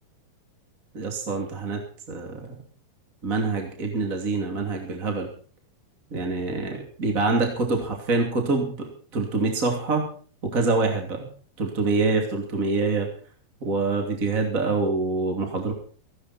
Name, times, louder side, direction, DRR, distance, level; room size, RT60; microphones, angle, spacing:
voice 1, 0.9-1.8 2.1-2.5 3.2-5.3 6.1-10.1 10.5-11.3 11.6-13.1 13.6-15.7, right 3 dB, 25° right, 2 dB, 2.6 m, -25 dB
18.0 x 15.5 x 4.3 m, 0.42 s
omnidirectional pair, 4.3 m